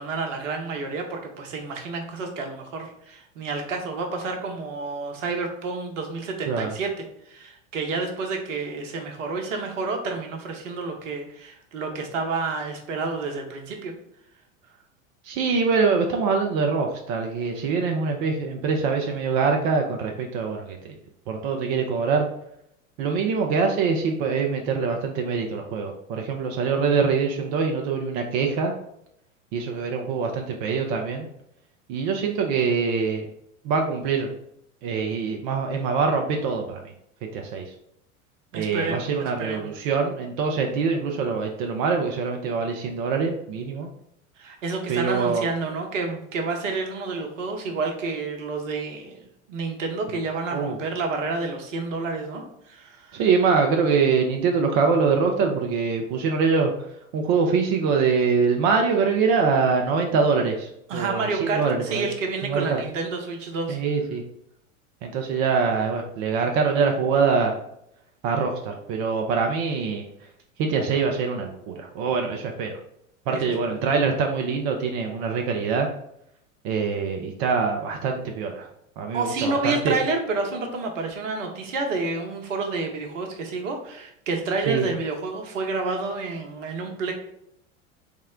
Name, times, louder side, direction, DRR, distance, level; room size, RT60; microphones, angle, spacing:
voice 1, 0.0-6.9 7.2-13.9 38.5-39.1 39.4-39.7 44.4-53.2 60.9-63.8 73.3-73.4 73.7-73.8 79.1-87.1, right 3 dB, 65° right, 3 dB, 0.9 m, -29 dB
voice 2, 15.2-20.9 21.3-22.3 23.0-28.7 29.5-31.3 31.9-33.3 33.6-34.3 34.8-36.9 37.3-37.7 38.5-43.9 44.9-45.5 50.5-50.8 53.1-56.9 57.1-62.1 62.4-62.8 63.7-64.2 65.0-67.6 68.2-70.0 70.6-72.8 73.3-75.9 76.6-78.7 79.0-79.9 84.7-84.9, right 5 dB, 40° right, 3 dB, 0.5 m, -24 dB
3.6 x 2.1 x 3.6 m, 0.75 s
figure-of-eight pair, 85°, 40 cm